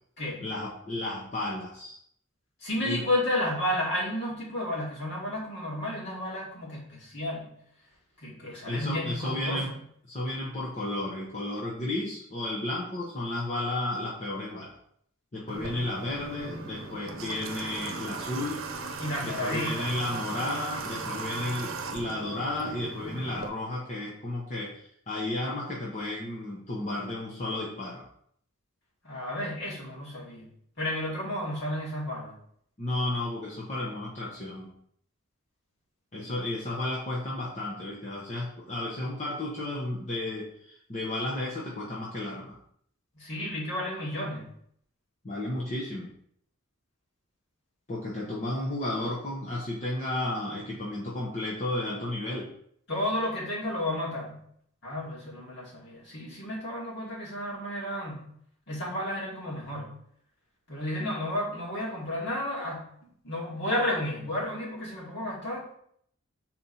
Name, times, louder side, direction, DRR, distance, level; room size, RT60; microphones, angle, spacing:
voice 1, 0.4-2.0 2.8-3.0 8.6-9.7 10.1-14.7 15.3-18.6 19.2-28.0 32.8-34.7 36.1-42.6 45.2-46.1 47.9-52.5, left 1 dB, 35° left, -5 dB, 1.0 m, -33 dB
voice 2, 2.6-7.5 8.2-9.7 19.0-19.9 29.0-30.5 30.8-32.3 43.1-44.4 52.9-54.4 54.8-58.3 58.7-59.9 60.7-62.8 63.2-65.6, left 1 dB, 55° left, -6 dB, 2.6 m, -32 dB
Water / Water tap faucet, 15.5-23.5, right 3 dB, 75° right, 0.7 m, -37 dB
4.3 x 4.1 x 5.7 m, 0.68 s
head